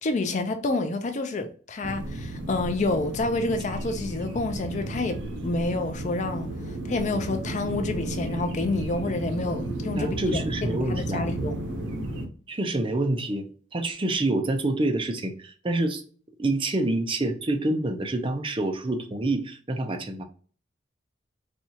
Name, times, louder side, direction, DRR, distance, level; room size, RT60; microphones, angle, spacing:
voice 1, 0.0-6.5 6.9-10.4 10.9-11.6, left 2 dB, 40° left, 0.4 m, -28 dB
sound 1, 1.8-12.3, right 1 dB, 85° right, 0.7 m, -33 dB
voice 2, 10.0-11.3 12.5-13.5 13.7-16.0 16.4-20.2, right 2 dB, 30° right, 0.5 m, -27 dB
4.3 x 2.3 x 2.7 m
head